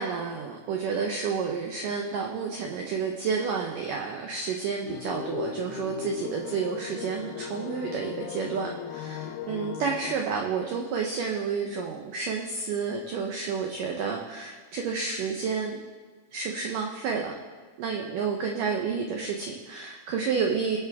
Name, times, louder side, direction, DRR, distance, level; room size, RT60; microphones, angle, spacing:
voice 1, 0.0-15.8 16.3-17.3 17.8-20.8, right 5 dB, 80° right, 1 dB, 1.9 m, -30 dB
sound 1, 4.8-10.2, left 9 dB, 85° left, 2.2 m, -37 dB
23.0 x 8.2 x 3.6 m, 1.5 s
omnidirectional pair, 5.1 m